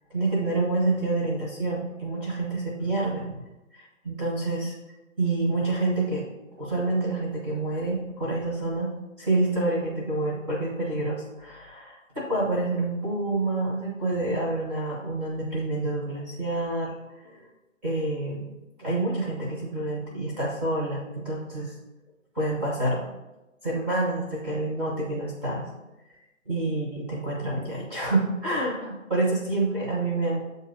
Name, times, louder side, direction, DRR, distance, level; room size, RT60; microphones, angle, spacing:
voice 1, 0.1-3.4 3.7-4.8 5.2-6.2 6.6-8.9 9.2-16.9 17.2-17.4 17.8-18.4 18.8-21.7 22.3-23.0 23.6-25.7 26.4-30.4, right 2 dB, 5° right, -6 dB, 0.7 m, -28 dB
7.7 x 2.7 x 5.5 m, 1.0 s
figure-of-eight pair, 140°, 40 cm